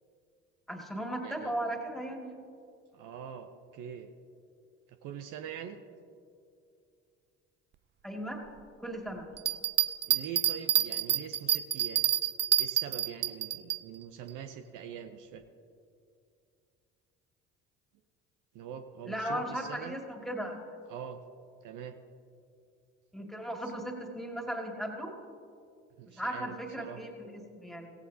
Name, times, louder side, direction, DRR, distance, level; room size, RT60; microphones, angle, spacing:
voice 1, 0.7-2.3 8.0-8.4 8.8-9.3 19.1-20.6 23.1-25.1 26.0-27.9, right 1 dB, ahead, 1 dB, 2.3 m, -37 dB
voice 2, 1.2-1.5 2.9-4.1 4.9-5.8 10.1-12.0 12.6-15.4 18.5-20.0 20.9-21.2 21.6-22.0 26.0-27.0, right 8 dB, 65° right, 8 dB, 0.8 m, -43 dB
Bell, 9.4-13.8 14.3-14.4, right 11 dB, 30° right, 0.4 m, -28 dB
16.5 x 16.0 x 2.8 m, 2.4 s
hypercardioid pair, 60°, 34 cm